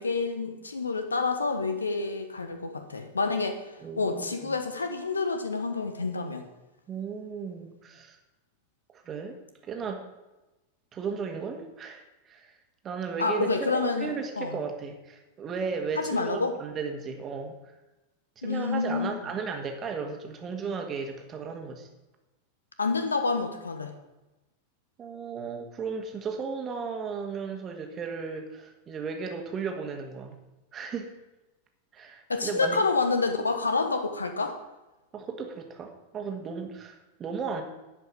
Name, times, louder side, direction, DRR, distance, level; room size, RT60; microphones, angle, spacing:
voice 1, 0.0-3.6 4.0-6.4 13.2-14.1 14.4-14.6 16.0-16.5 18.4-19.1 22.8-23.9 32.3-34.5, left 4 dB, 75° left, 7 dB, 1.3 m, -28 dB
voice 2, 3.8-4.6 6.9-8.2 8.9-10.0 10.9-12.6 12.8-17.5 18.4-21.9 25.0-30.4 30.7-31.1 31.9-32.8 35.1-37.6, right 5 dB, 25° right, 4 dB, 1.9 m, -35 dB
11.0 x 5.5 x 8.8 m, 1.1 s
figure-of-eight pair, 90°, 0 cm